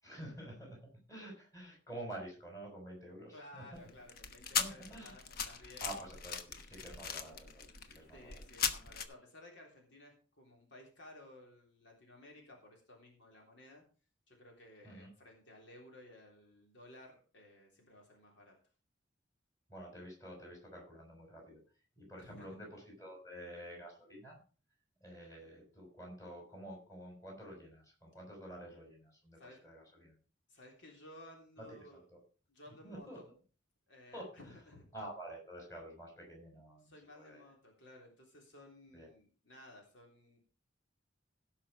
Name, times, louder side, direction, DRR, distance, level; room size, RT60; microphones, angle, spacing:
voice 1, 0.0-3.9 4.6-5.2 5.6-8.4 14.8-15.1 19.7-21.6 22.0-24.4 25.0-30.2 31.6-31.7 31.9-32.2 32.8-33.2 34.1-34.3 34.9-37.4 38.9-39.1, right 1 dB, 15° left, -1 dB, 5.7 m, -49 dB
voice 2, 3.3-5.9 8.1-13.8 14.3-18.6 22.2-22.6 29.4-29.6 30.5-32.1 32.5-33.2 33.9-34.8 36.8-40.4, left 1 dB, 65° left, 0 dB, 3.5 m, -56 dB
sound 1, 3.7-9.0, left 7 dB, 50° left, 1.1 m, -39 dB
17.0 x 5.8 x 4.9 m, 0.37 s
head